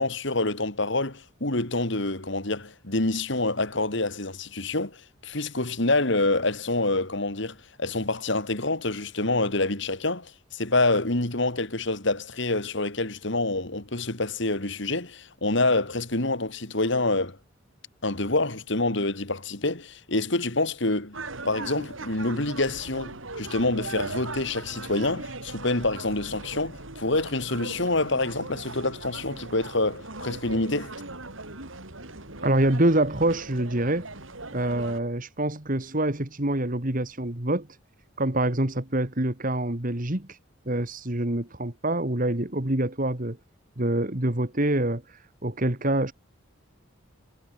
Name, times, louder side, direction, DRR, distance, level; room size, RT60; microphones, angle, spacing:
voice 1, 0.0-17.4 18.0-21.2 21.4-31.0, left 2 dB, 60° left, 3.1 m, -27 dB
sound 1, 21.1-35.0, right 2 dB, 75° right, 5.4 m, -39 dB
voice 2, 32.4-34.1 34.5-37.7 38.2-40.4 40.7-43.4 43.8-46.1, right 1 dB, 40° right, 2.4 m, -26 dB
head